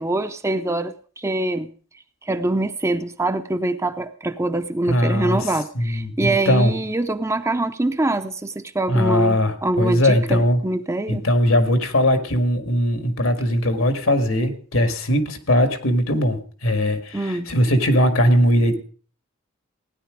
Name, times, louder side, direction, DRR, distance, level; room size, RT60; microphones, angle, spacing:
voice 1, 0.0-1.7 2.2-11.2 17.1-17.5, right 2 dB, 15° right, 9 dB, 0.6 m, -24 dB
voice 2, 4.9-5.5 5.8-6.7 8.9-10.6 11.1-18.8, equal, 75° left, 7 dB, 1.9 m, -20 dB
16.5 x 10.5 x 5.0 m, 0.43 s
head